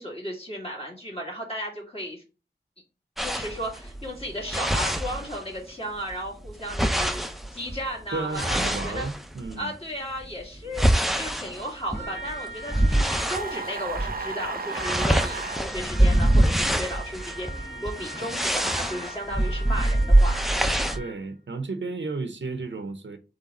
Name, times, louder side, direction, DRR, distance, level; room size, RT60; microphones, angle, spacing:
voice 1, 0.0-2.2 3.2-9.1 9.6-10.9 11.1-20.4, equal, 30° left, 2.0 m, -35 dB
sound 1, 3.2-5.7 6.0-9.6 10.2-13.5 13.9-14.2 14.5-21.0, right 1 dB, ahead, 0.5 m, -24 dB
voice 2, 8.1-9.7 21.0-23.2, right 3 dB, 90° right, 0.6 m, -33 dB
Trumpet, 11.9-21.3, right 2 dB, 80° left, 1.1 m, -41 dB
sound 2, 13.3-15.6, right 4 dB, 55° right, 0.6 m, -34 dB
3.8 x 3.4 x 4.2 m
wide cardioid pair, 45°, 18 cm